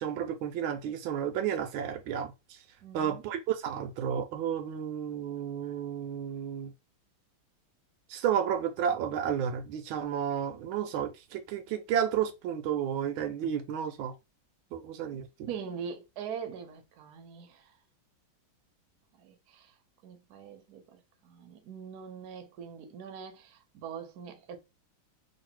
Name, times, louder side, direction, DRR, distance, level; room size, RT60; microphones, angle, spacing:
voice 1, 0.0-2.6 2.9-6.7 8.1-14.1 14.7-15.3, right 9 dB, 80° right, 1.4 m, -32 dB
voice 2, 2.8-3.2 15.1-17.8 19.2-19.7 20.0-24.6, right 7 dB, 60° right, 1.1 m, -43 dB
3.2 x 2.7 x 4.3 m
omnidirectional pair, 2.2 m